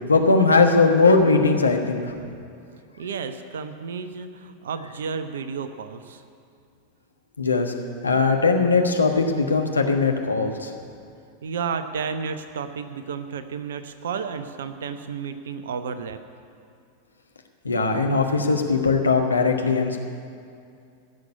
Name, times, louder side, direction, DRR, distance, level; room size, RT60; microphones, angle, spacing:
voice 1, 0.1-2.0 7.4-7.7 8.0-10.7 17.6-20.0, left 4 dB, 80° left, 4 dB, 1.4 m, -19 dB
voice 2, 3.0-6.2 11.4-16.2, right 6 dB, 60° right, 10 dB, 0.9 m, -32 dB
16.0 x 6.7 x 9.9 m, 2.5 s
figure-of-eight pair, 90°, 0 cm